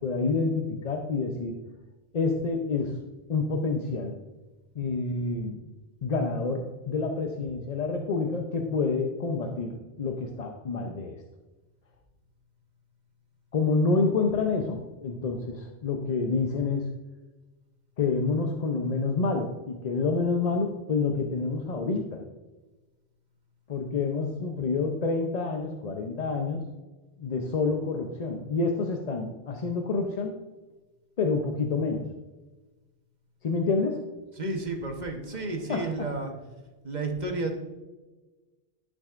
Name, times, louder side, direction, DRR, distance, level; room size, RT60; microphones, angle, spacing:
voice 1, 0.0-1.6 2.1-3.0 3.3-4.2 4.7-5.6 6.0-11.2 13.5-16.9 18.0-22.2 23.7-26.6 27.2-30.3 31.2-32.1 33.4-34.0 35.7-35.9, left 4 dB, 45° left, 3 dB, 0.7 m, -28 dB
voice 2, 34.3-36.3 36.8-37.6, right 2 dB, 45° right, 3 dB, 1.2 m, -31 dB
12.0 x 6.3 x 2.5 m, 1.2 s
omnidirectional pair, 1.1 m